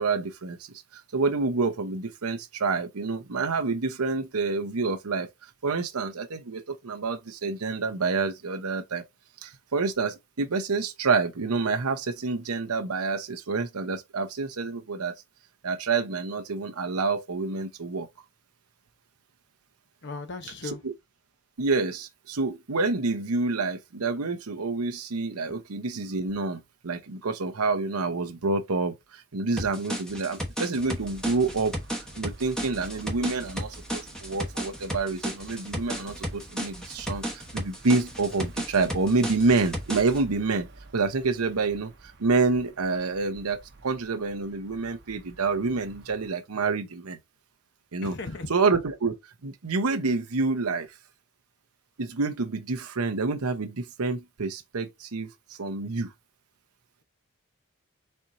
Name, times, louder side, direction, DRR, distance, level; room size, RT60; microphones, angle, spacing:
voice 1, 0.0-5.3 5.6-9.0 9.4-15.1 15.6-18.1 20.8-20.9 21.6-31.8 32.2-40.7 40.9-41.9 42.2-47.2 47.9-48.2 48.5-49.2 49.4-50.9 52.0-56.1, right 3 dB, 90° right, 0.8 m, -28 dB
voice 2, 20.0-20.8 48.0-48.5, left 3 dB, 50° left, 0.9 m, -36 dB
sound 1, 29.6-40.2, equal, 5° left, 1.0 m, -34 dB
sound 2, 30.9-46.3, right 2 dB, 50° right, 0.9 m, -49 dB
4.4 x 4.3 x 2.6 m
head